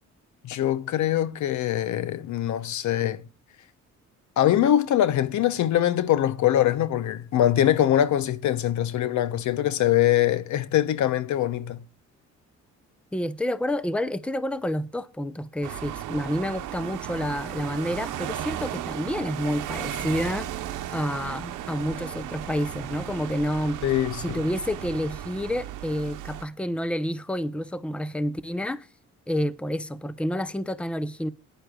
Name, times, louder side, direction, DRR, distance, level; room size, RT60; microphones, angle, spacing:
voice 1, 0.4-3.2 4.4-11.8 23.8-24.4, left 11 dB, 70° left, 0.8 m, -23 dB
voice 2, 13.1-20.5 20.9-23.8 24.2-28.9 29.3-31.3, equal, 5° left, 0.7 m, -29 dB
sound 1, 15.6-26.4, right 11 dB, 90° right, 0.9 m, -35 dB
20.0 x 10.5 x 2.3 m
cardioid pair, 90°, 30 cm